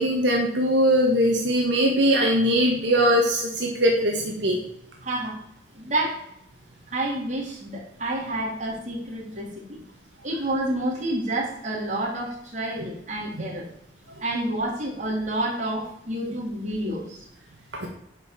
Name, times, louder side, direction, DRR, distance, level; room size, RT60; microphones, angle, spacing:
voice 1, 0.0-4.6 17.8-17.9, equal, 80° right, 1 dB, 1.8 m, -21 dB
voice 2, 5.0-5.4 5.8-6.2 6.9-9.8 10.2-13.6 14.2-17.3, right 1 dB, 40° right, -3 dB, 4.0 m, -29 dB
10.5 x 5.5 x 7.5 m, 0.76 s
head